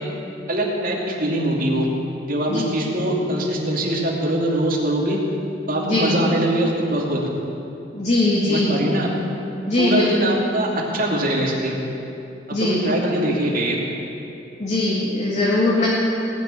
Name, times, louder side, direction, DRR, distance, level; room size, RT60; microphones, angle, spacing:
voice 1, 0.5-1.9 2.3-5.2 5.7-7.2 8.5-9.1 9.8-11.7 12.5-13.8, right 1 dB, 50° right, -2 dB, 2.7 m, -22 dB
voice 2, 5.8-6.2 7.9-8.8 9.7-10.3 12.5-12.8 14.6-15.9, left 2 dB, 40° left, -6 dB, 2.3 m, -20 dB
19.5 x 6.7 x 9.9 m, 2.8 s
head